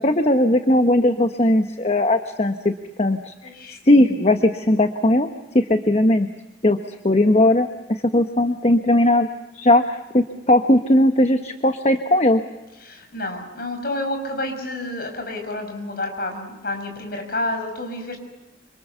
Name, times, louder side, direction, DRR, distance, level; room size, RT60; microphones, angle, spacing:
voice 1, 0.0-2.7 3.0-3.5 3.8-5.3 5.5-6.3 6.6-9.3 9.5-12.4, left 1 dB, 35° left, 6 dB, 1.1 m, -18 dB
voice 2, 3.4-3.8 12.8-18.2, left 2 dB, 55° left, 4 dB, 6.2 m, -29 dB
27.5 x 26.5 x 6.9 m, 1.0 s
head